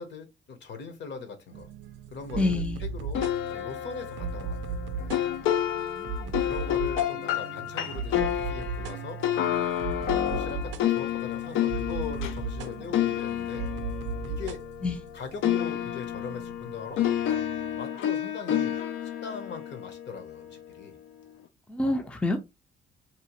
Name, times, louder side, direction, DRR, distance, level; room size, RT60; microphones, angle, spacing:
voice 1, 0.0-1.7 2.1-3.2 3.5-5.2 6.4-9.2 10.3-13.7 14.2-14.6 15.1-17.0 17.7-18.8 19.2-21.0, left 5 dB, 65° left, 0.8 m, -40 dB
sound 1, 1.5-17.8, right 5 dB, 70° right, 0.4 m, -37 dB
voice 2, 2.4-2.8 5.8-6.5 14.8-15.0 21.7-22.4, left 2 dB, 5° left, 0.4 m, -28 dB
sound 2, 3.1-15.1 15.4-20.6, left 11 dB, 85° left, 0.4 m, -30 dB
2.8 x 2.0 x 2.9 m
cardioid pair, 90°, 20 cm